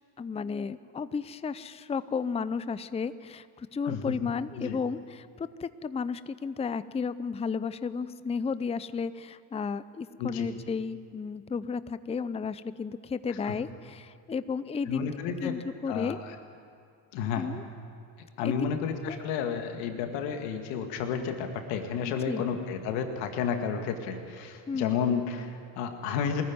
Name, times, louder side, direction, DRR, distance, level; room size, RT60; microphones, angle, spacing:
voice 1, 0.2-15.1 15.4-16.2 17.4-17.6 18.4-18.8 19.1-19.2 22.3-22.4 24.7-25.0, left 5 dB, 15° left, 15 dB, 0.5 m, -33 dB
voice 2, 14.9-15.5 15.9-16.2 17.1-17.5 18.4-26.4, left 7 dB, 85° left, 5 dB, 2.1 m, -31 dB
19.5 x 14.5 x 9.4 m, 2.4 s
supercardioid pair, 75°, 46 cm